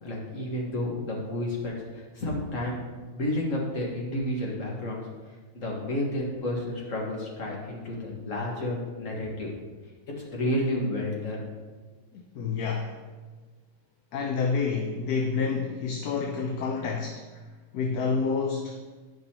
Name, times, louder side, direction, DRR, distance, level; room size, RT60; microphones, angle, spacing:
voice 1, 0.0-5.0 5.5-9.5 10.1-11.5, left 1 dB, 50° left, -3 dB, 1.9 m, -31 dB
voice 2, 12.4-12.9 14.1-17.2 17.7-18.8, left 5 dB, 70° left, 2 dB, 1.1 m, -28 dB
11.0 x 5.4 x 2.9 m, 1.3 s
omnidirectional pair, 1.8 m